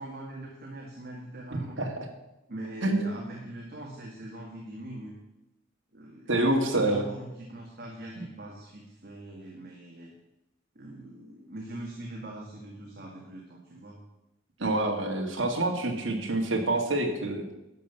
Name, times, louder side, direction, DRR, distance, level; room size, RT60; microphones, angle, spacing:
voice 1, 0.0-1.8 2.5-5.2 5.9-10.1 10.8-14.0, right 1 dB, 50° right, -1 dB, 1.9 m, -42 dB
voice 2, 1.5-2.1 2.8-3.0 6.3-7.0 14.6-17.4, right 2 dB, 75° right, 1 dB, 1.9 m, -27 dB
12.0 x 5.6 x 8.1 m, 0.92 s
head